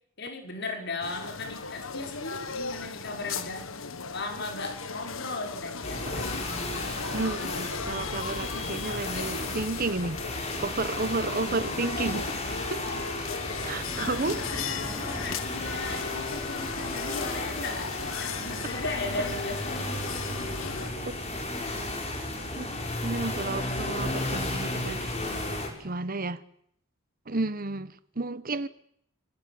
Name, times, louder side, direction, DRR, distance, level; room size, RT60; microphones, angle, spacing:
voice 1, 0.2-3.7 4.1-6.5 11.4-11.7 14.0-17.9 18.2-20.0, left 3 dB, 55° left, 5.9 m, -37 dB
sound 1, 1.0-20.9, left 5 dB, 75° left, 1.7 m, -37 dB
sound 2, 5.8-25.7, left 2 dB, 30° left, 6.2 m, -34 dB
voice 2, 7.1-10.2 10.6-13.1 13.6-14.4 22.6-22.7 23.0-25.0 25.8-26.4 27.3-28.7, right 3 dB, 45° right, 1.1 m, -32 dB
sound 3, 8.9-18.1, equal, 10° right, 4.3 m, -46 dB
29.5 x 19.0 x 9.7 m
head